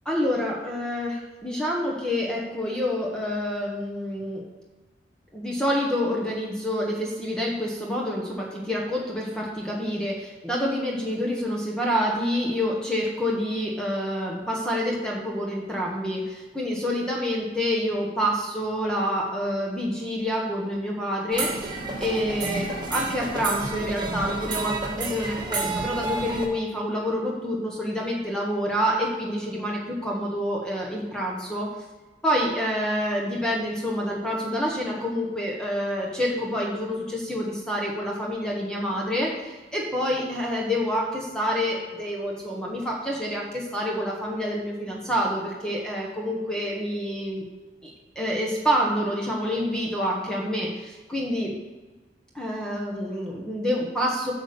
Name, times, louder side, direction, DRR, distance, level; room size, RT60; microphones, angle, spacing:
voice 1, 0.0-4.4 5.3-31.7 32.2-47.4 47.8-51.5 52.3-54.3, equal, 5° left, -3 dB, 1.2 m, -27 dB
sound 1, 21.3-26.5, right 3 dB, 25° right, 1.5 m, -30 dB
8.5 x 5.1 x 6.9 m, 1.2 s
head